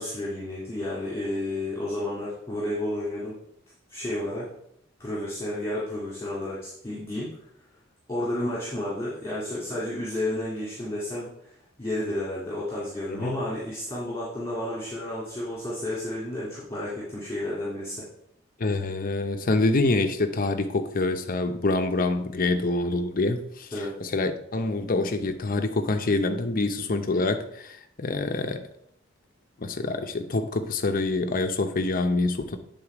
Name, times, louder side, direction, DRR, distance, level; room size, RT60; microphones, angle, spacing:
voice 1, 0.0-3.4 3.9-4.5 5.0-7.3 8.1-11.5 11.8-18.0 23.7-23.9, left 1 dB, 15° left, -7 dB, 2.0 m, -31 dB
voice 2, 13.1-13.5 18.6-23.7 24.0-28.7 29.6-32.6, left 2 dB, 45° left, 7 dB, 0.7 m, -26 dB
8.8 x 3.8 x 4.9 m, 0.73 s
head